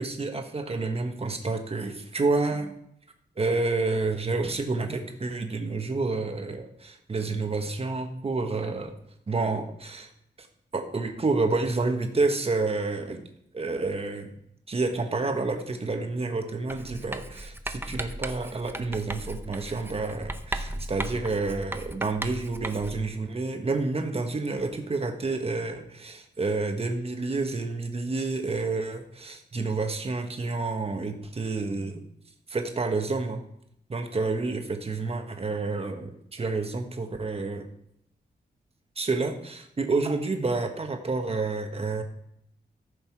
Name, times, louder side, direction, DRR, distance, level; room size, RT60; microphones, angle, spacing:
voice 1, 0.0-2.7 3.4-8.9 9.3-10.1 10.4-10.5 10.7-13.2 13.5-14.4 14.7-32.0 32.5-33.4 33.9-37.7 39.0-42.0, right 3 dB, 35° right, 5 dB, 1.4 m, -29 dB
Writing, 16.7-23.1, right 1 dB, 10° right, 0.7 m, -36 dB
14.5 x 6.7 x 4.7 m, 0.74 s
wide cardioid pair, 140°, 18 cm